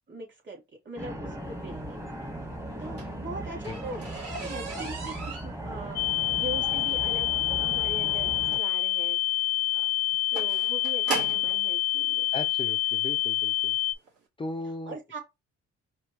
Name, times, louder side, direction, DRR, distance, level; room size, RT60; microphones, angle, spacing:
voice 1, 0.1-2.1 2.8-9.8 10.3-12.3 14.8-15.2, right 2 dB, 40° right, 2.9 m, -41 dB
sound 1, 1.0-8.6, right 1 dB, 10° right, 1.3 m, -38 dB
sound 2, 2.7-11.6 12.5-12.6 13.1-13.4 13.6-13.7 14.1-14.2, right 4 dB, 55° right, 2.9 m, -38 dB
sound 3, 6.0-13.9, left 15 dB, 65° left, 0.5 m, -27 dB
voice 2, 12.3-13.8 14.4-15.0, left 2 dB, 15° left, 0.5 m, -37 dB
5.0 x 2.7 x 3.0 m
cardioid pair, 90°, 30 cm